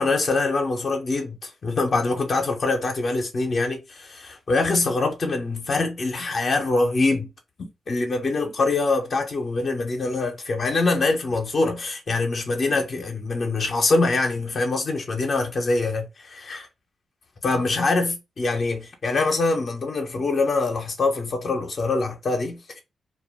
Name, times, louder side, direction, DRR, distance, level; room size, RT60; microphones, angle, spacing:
voice 1, 0.0-7.3 7.6-16.7 17.4-22.8, left 3 dB, 55° left, 0.7 m, -24 dB
2.3 x 2.1 x 3.3 m
supercardioid pair, 40°, 0 cm